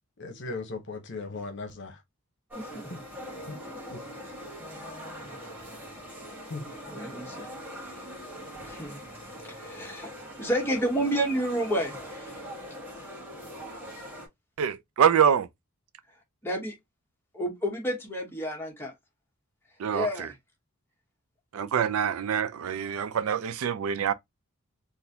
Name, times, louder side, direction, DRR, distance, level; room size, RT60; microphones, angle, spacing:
voice 1, 0.2-2.0 2.9-3.0 3.9-4.0 6.5-6.7, left 3 dB, 55° left, 0.9 m, -37 dB
sound 1, 2.5-14.3, equal, 10° right, 1.3 m, -42 dB
voice 2, 4.6-5.3 6.9-7.5 8.7-9.0 9.4-10.1 10.4-12.4 16.4-16.7 17.3-18.9 19.9-20.3, right 1 dB, 10° left, 1.1 m, -30 dB
voice 3, 14.6-15.5 19.8-20.3 21.5-24.1, right 8 dB, 70° right, 0.4 m, -25 dB
3.9 x 2.6 x 2.7 m
head